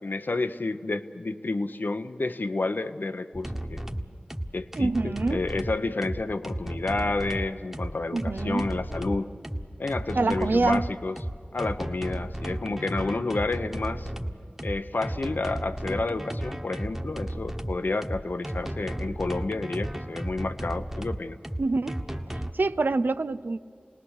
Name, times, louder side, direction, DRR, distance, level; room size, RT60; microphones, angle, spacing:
voice 1, 0.0-3.8 4.5-9.3 9.8-11.2 11.5-14.1 14.6-21.4, left 3 dB, 75° left, 0.8 m, -30 dB
sound 1, 3.3-22.5, right 1 dB, 10° right, 1.2 m, -34 dB
voice 2, 4.8-5.4 8.1-8.7 10.2-10.9 21.6-22.0 22.5-23.6, right 3 dB, 85° right, 0.5 m, -25 dB
29.5 x 19.5 x 6.5 m
wide cardioid pair, 50°, 3 cm